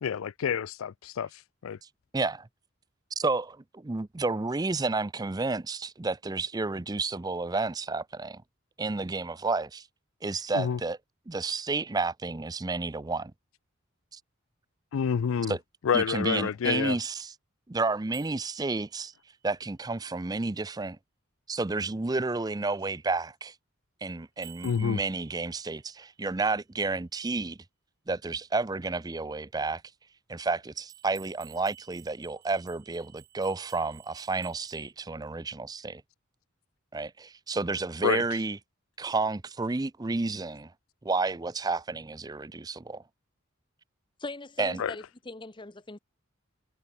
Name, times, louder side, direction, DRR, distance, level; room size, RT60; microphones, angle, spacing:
voice 1, 0.0-1.8 10.5-10.8 14.9-15.5 15.8-17.0 24.6-25.0 38.0-38.4 44.8-45.0, left 7 dB, 80° left, 0.4 m, -28 dB
voice 2, 2.1-2.5 3.2-8.4 8.8-9.9 10.2-11.0 11.3-13.3 14.1-14.2 15.5-15.6 15.9-17.3 17.7-19.1 19.4-21.0 21.5-23.5 24.0-27.6 28.1-29.8 30.3-36.0 36.9-38.6 39.0-40.7 41.0-43.0 44.6-44.8, right 3 dB, 20° right, 0.5 m, -31 dB
sound 1, 18.1-19.5 24.4-26.4 30.9-34.9, right 13 dB, 50° right, 1.5 m, -54 dB
voice 3, 44.2-46.0, left 2 dB, 25° left, 0.9 m, -40 dB
head